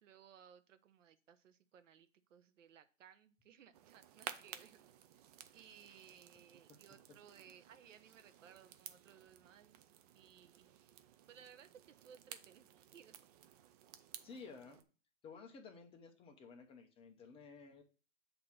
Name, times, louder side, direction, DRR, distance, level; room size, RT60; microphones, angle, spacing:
voice 1, 0.0-4.8 5.5-11.0 11.3-13.2 15.7-15.8, right 8 dB, 70° right, 11 dB, 0.9 m, -61 dB
sound 1, 3.7-14.8, right 10 dB, 30° right, 0.5 m, -55 dB
voice 2, 14.2-14.8 15.2-17.8, left 5 dB, 15° left, 5 dB, 0.7 m, -54 dB
7.9 x 2.9 x 5.9 m, 0.37 s
hypercardioid pair, 130°, 39 cm